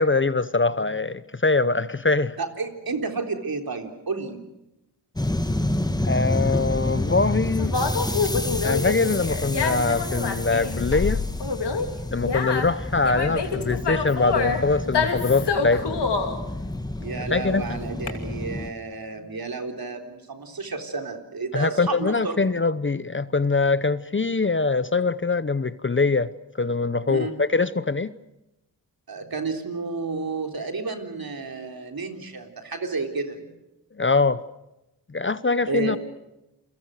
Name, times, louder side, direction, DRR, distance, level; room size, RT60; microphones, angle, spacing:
voice 1, 0.0-2.4 6.0-7.7 8.6-11.2 12.1-16.0 17.3-17.8 21.5-26.3 26.6-28.1 34.0-34.4 35.1-36.0, left 3 dB, 30° left, 0.8 m, -23 dB
voice 2, 2.4-4.4 17.0-22.4 27.1-27.3 29.1-33.4 35.7-36.0, right 4 dB, 60° right, 3.8 m, -31 dB
sound 1, 5.2-18.7, left 1 dB, 10° left, 1.6 m, -29 dB
Conversation, 6.2-18.1, left 4 dB, 75° left, 3.0 m, -27 dB
29.5 x 23.5 x 6.6 m
wide cardioid pair, 70°, 41 cm